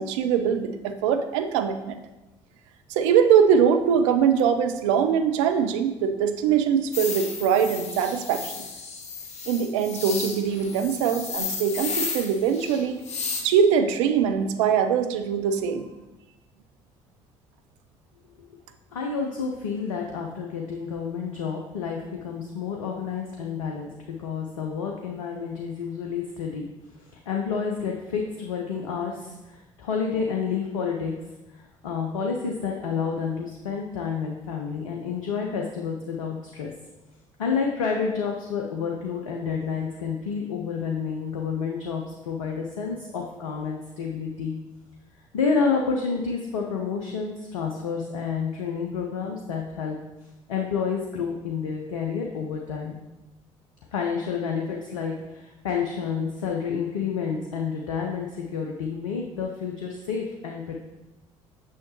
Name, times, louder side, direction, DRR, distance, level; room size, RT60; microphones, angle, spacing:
voice 1, 0.0-2.0 2.9-8.6 9.5-13.0 13.4-15.9, right 7 dB, 65° right, 7 dB, 0.5 m, -22 dB
sound 1, 6.9-13.4, left 5 dB, 40° left, 1.2 m, -33 dB
voice 2, 18.9-23.9 24.2-26.6 27.1-31.1 31.8-36.7 37.4-44.6 45.3-50.0 50.5-53.0 53.9-60.7, left 6 dB, 75° left, 1 dB, 0.5 m, -29 dB
6.4 x 6.4 x 2.9 m, 1.0 s
figure-of-eight pair, 50°, 17 cm